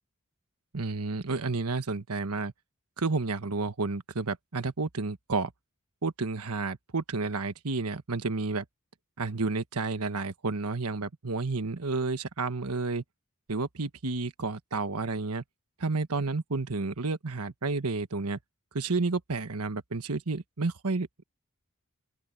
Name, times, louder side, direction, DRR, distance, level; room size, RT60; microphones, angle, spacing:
voice 1, 0.7-2.5 3.0-5.5 6.0-8.6 9.2-13.0 13.5-15.4 15.8-18.4 18.7-21.2, right 3 dB, 80° right, 1.3 m, -31 dB
open air
head